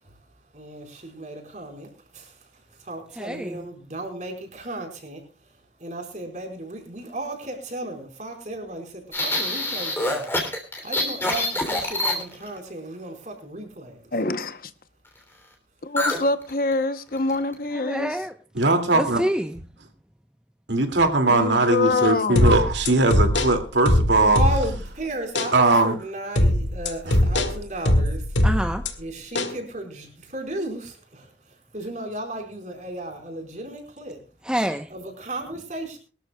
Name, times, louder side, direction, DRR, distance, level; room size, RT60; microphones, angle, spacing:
voice 1, 0.0-14.1 24.3-28.4 29.0-34.2 34.9-36.0, right 1 dB, 40° right, 4.6 m, -35 dB
voice 2, 3.2-3.7 17.7-18.3 18.9-19.6 28.4-28.8 34.4-34.9, equal, 5° right, 0.8 m, -27 dB
sound 1, 9.1-12.6 16.0-16.2 16.5-16.7 17.2-17.5, left 1 dB, 15° left, 3.0 m, -26 dB
voice 3, 14.1-14.7 15.8-18.2 21.3-22.6, left 3 dB, 50° left, 0.9 m, -25 dB
voice 4, 18.6-19.2 20.7-24.4 25.5-25.9, right 2 dB, 80° right, 2.4 m, -20 dB
sound 2, 22.4-24.9 25.4-25.5 26.4-28.9 29.4-29.6, left 1 dB, 90° left, 1.8 m, -21 dB
23.0 x 13.0 x 2.3 m
head